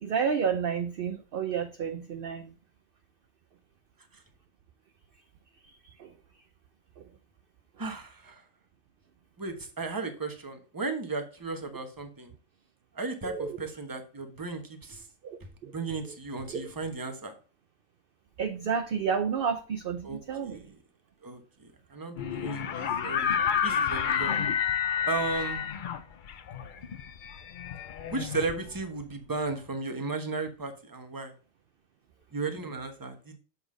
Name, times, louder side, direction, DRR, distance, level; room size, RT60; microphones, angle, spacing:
voice 1, 0.0-2.5 6.0-6.1 7.0-7.1 13.2-13.6 15.2-15.7 16.5-16.6 18.4-20.6, right 6 dB, 55° right, 0.7 m, -30 dB
voice 2, 7.8-8.4 9.4-12.3 12.9-15.1 15.4-17.3 20.0-20.8 21.2-23.4 23.6-24.3 25.1-25.6 28.1-31.3 32.3-33.4, right 3 dB, 20° right, 1.0 m, -35 dB
sound 1, 22.2-29.0, left 8 dB, 55° left, 0.6 m, -30 dB
7.0 x 4.2 x 4.9 m
omnidirectional pair, 1.3 m